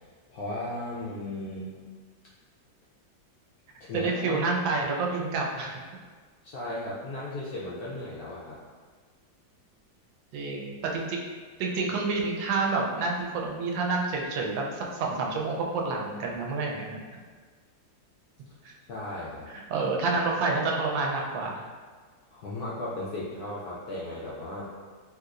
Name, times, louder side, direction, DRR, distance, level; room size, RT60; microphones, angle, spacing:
voice 1, 0.3-1.8 3.8-4.5 6.4-8.6 18.9-19.5 22.3-24.7, left 1 dB, 75° left, -7 dB, 0.8 m, -36 dB
voice 2, 3.9-5.8 10.3-11.2 11.6-17.0 18.6-18.7 19.5-21.6, right 3 dB, 85° right, -1 dB, 1.3 m, -28 dB
3.3 x 2.8 x 2.4 m, 1.5 s
omnidirectional pair, 2.1 m